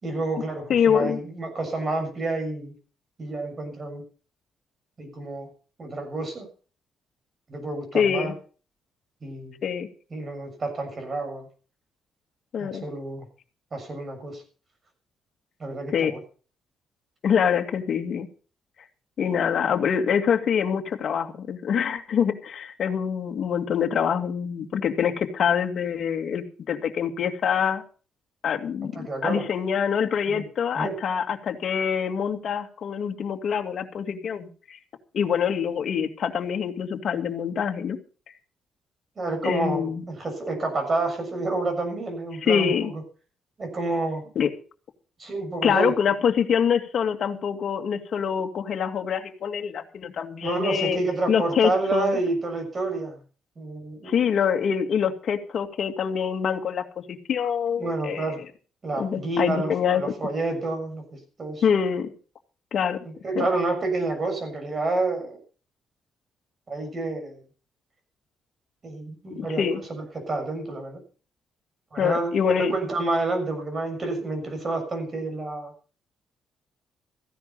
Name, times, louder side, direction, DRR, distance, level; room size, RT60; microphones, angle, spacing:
voice 1, 0.0-2.7 3.2-4.0 5.0-5.5 5.8-6.5 7.5-8.3 9.2-9.6 10.1-11.5 12.6-13.2 13.7-14.4 15.6-16.2 28.9-29.4 30.2-30.4 30.7-31.0 39.2-42.9 43.6-44.3 45.2-45.9 50.4-53.2 53.6-54.1 57.8-58.4 58.8-61.6 63.0-65.4 66.7-67.4 68.8-71.0 71.9-75.7, right 2 dB, 35° right, 6 dB, 6.8 m, -29 dB
voice 2, 0.7-1.2 7.9-8.3 9.6-9.9 12.5-12.8 15.9-16.1 17.2-18.3 19.2-27.8 28.4-28.9 29.2-34.8 35.1-38.0 39.4-40.0 42.4-42.9 44.4-44.5 45.6-51.0 51.3-52.2 54.1-58.4 59.0-60.0 61.6-62.1 62.7-63.0 63.4-63.5 69.4-69.8 72.0-72.7, left 7 dB, 60° left, 5 dB, 2.1 m, -25 dB
15.0 x 10.5 x 5.7 m, 0.39 s
cardioid pair, 90°, 0 cm